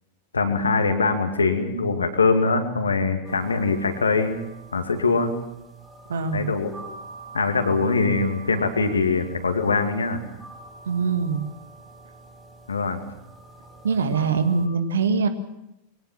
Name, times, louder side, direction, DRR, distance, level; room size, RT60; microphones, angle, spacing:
voice 1, 0.3-4.4 4.7-5.3 6.3-6.7 7.3-10.2 12.7-13.0, left 4 dB, 75° left, 6 dB, 2.4 m, -22 dB
sound 1, 3.2-14.7, right 3 dB, 15° right, 5.6 m, -45 dB
voice 2, 6.1-6.5 10.9-11.5 13.8-15.3, right 5 dB, 65° right, 9 dB, 1.9 m, -23 dB
22.0 x 18.5 x 7.4 m, 0.87 s
figure-of-eight pair, 90°, 0 cm